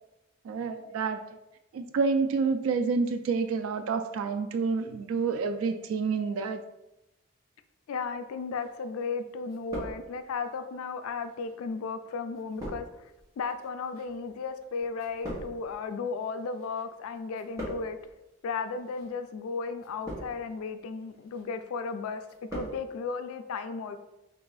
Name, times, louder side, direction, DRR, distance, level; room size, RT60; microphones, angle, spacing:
voice 1, 0.4-1.2 1.7-6.6, right 4 dB, 80° right, 8 dB, 0.3 m, -28 dB
voice 2, 7.9-13.1 13.4-18.0 18.4-22.2 22.5-24.0, left 4 dB, 90° left, 10 dB, 0.3 m, -35 dB
sound 1, 8.6-9.1 9.4-10.5 11.2-16.8 17.1-18.1 18.8-19.1 19.8-20.6 21.0-21.5 21.8-22.8 23.0-23.1, equal, 15° right, 1.2 m, -42 dB
3.8 x 2.6 x 3.9 m, 0.94 s
head